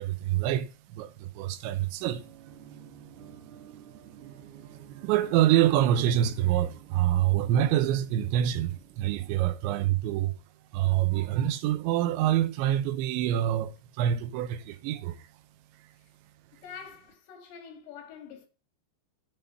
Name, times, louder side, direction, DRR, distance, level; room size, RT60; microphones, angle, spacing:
voice 1, 0.0-2.2 5.0-10.4 10.7-13.7 14.0-15.2, right 12 dB, 80° right, 3.1 m, -26 dB
sound 1, 2.1-9.7, right 9 dB, 65° right, 3.4 m, -51 dB
voice 2, 16.5-18.5, left 7 dB, 70° left, 4.0 m, -46 dB
10.5 x 5.7 x 6.9 m
omnidirectional pair, 5.2 m